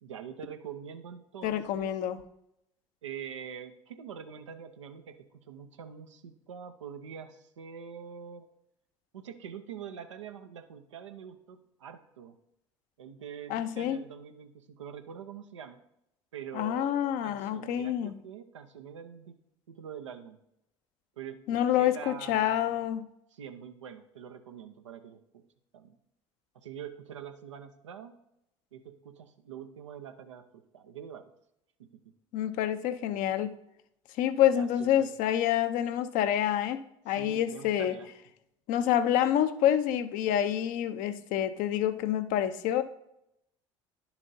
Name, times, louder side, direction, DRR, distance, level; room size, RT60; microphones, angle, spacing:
voice 1, 0.0-1.9 3.0-8.5 9.1-12.4 13.0-15.8 16.3-16.9 17.2-19.4 19.7-20.4 21.2-22.9 23.3-25.4 25.7-25.9 26.5-28.1 28.7-31.2 31.8-31.9 34.5-35.1 37.1-38.1, right 7 dB, 85° right, 8 dB, 0.6 m, -44 dB
voice 2, 1.4-2.2 13.5-14.0 16.5-18.2 21.5-23.0 32.3-33.6 34.2-36.8 37.1-37.9 38.7-42.8, left 11 dB, 60° left, 11 dB, 0.6 m, -27 dB
11.0 x 7.1 x 2.7 m, 0.80 s
hypercardioid pair, 60°, 15 cm